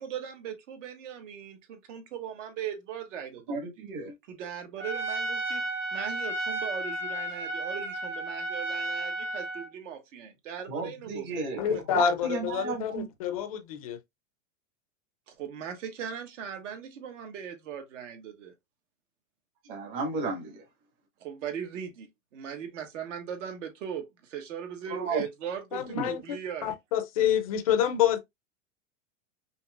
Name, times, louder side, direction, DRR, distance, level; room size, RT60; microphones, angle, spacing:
voice 1, 0.0-3.7 4.3-5.6 5.9-12.0 15.3-18.5 21.2-26.8, right 8 dB, 70° right, 1.4 m, -39 dB
voice 2, 3.5-4.1 10.7-11.6 11.9-13.1 19.7-20.6 24.9-25.2 25.9-26.1, right 3 dB, 40° right, 1.5 m, -33 dB
Trumpet, 4.8-9.7, right 2 dB, 25° right, 0.7 m, -33 dB
voice 3, 11.6-14.0 25.7-28.2, left 9 dB, 30° left, 0.4 m, -28 dB
5.6 x 2.8 x 2.3 m
supercardioid pair, 175°, 38 cm